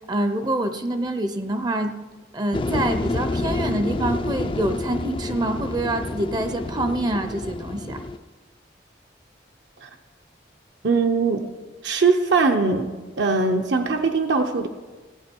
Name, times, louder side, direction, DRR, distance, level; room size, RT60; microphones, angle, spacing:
voice 1, 0.1-1.9 2.3-8.0, right 1 dB, 20° right, 9 dB, 0.5 m, -26 dB
sound 1, 2.5-8.2, left 2 dB, 25° left, 0.3 m, -28 dB
voice 2, 10.8-11.4 11.8-12.9 13.2-14.7, right 4 dB, 70° right, 3 dB, 0.7 m, -21 dB
15.5 x 8.8 x 4.5 m, 1.3 s
head